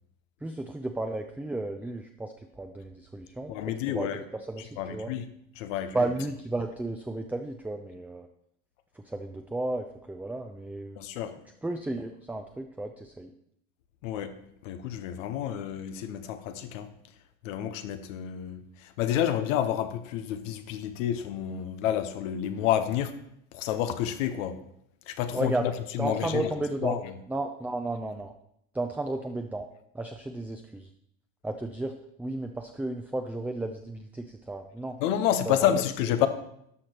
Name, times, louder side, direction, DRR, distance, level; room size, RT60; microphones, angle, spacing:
voice 1, 0.4-3.5 3.9-5.1 5.9-8.3 9.0-11.0 11.6-13.3 25.3-25.7 26.0-27.0 27.3-28.3 28.7-29.7 29.9-30.9 31.4-31.9 32.2-35.0 35.5-35.8, right 2 dB, 5° right, 5 dB, 0.5 m, -33 dB
voice 2, 3.5-4.2 4.8-5.2 5.6-6.0 11.0-11.3 14.0-14.3 14.6-16.9 17.4-23.2 23.5-24.6 25.1-26.4 26.8-27.0 35.0-36.3, left 10 dB, 90° left, 9 dB, 0.8 m, -29 dB
12.5 x 5.0 x 4.3 m, 0.73 s
supercardioid pair, 100°, 37 cm